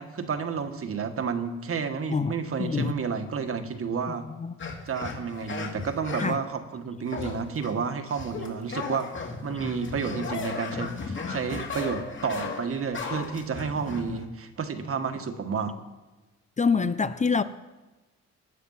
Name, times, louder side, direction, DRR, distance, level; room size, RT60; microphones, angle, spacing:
voice 1, 0.0-4.2 4.9-15.8, right 5 dB, 45° right, 1.6 m, -31 dB
voice 2, 2.6-2.9 4.4-4.5 6.2-6.4 16.6-17.4, left 5 dB, 25° left, 0.6 m, -25 dB
sound 1, 4.6-6.4 7.1-7.7 8.1-14.2, left 4 dB, 40° left, 2.7 m, -35 dB
20.0 x 8.5 x 5.7 m
cardioid pair, 90°, 30 cm